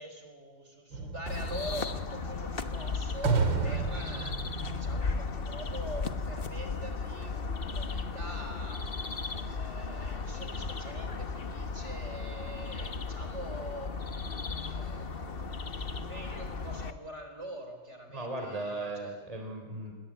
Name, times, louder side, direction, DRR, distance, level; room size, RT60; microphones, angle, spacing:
voice 1, 0.0-8.9 9.3-14.2 14.5-19.1, right 1 dB, 35° right, 5 dB, 4.4 m, -44 dB
throwing stuff in dumpster sounds like gunshots, 0.9-5.9, right 5 dB, 75° right, 2.6 m, -33 dB
sound 1, 1.3-16.9, left 4 dB, 35° left, 1.2 m, -36 dB
voice 2, 18.1-19.9, right 2 dB, 20° right, 3 dB, 3.4 m, -37 dB
28.0 x 21.5 x 8.9 m, 1.4 s
omnidirectional pair, 2.1 m